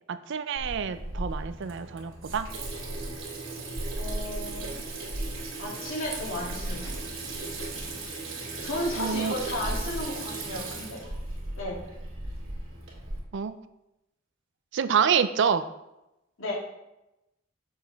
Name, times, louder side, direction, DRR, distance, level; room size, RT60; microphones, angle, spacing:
voice 1, 0.1-2.5 9.0-9.3 13.3-13.6 14.7-15.6, right 7 dB, 60° right, 12 dB, 0.4 m, -27 dB
Water tap faucet / Sink (filling or washing), 0.6-13.2, right 2 dB, 75° right, 2.3 m, -36 dB
voice 2, 4.0-4.8 5.6-6.9 8.6-11.0 11.6-11.8 16.4-16.5, left 1 dB, 80° left, -4 dB, 2.6 m, -34 dB
7.0 x 6.4 x 3.4 m, 0.91 s
head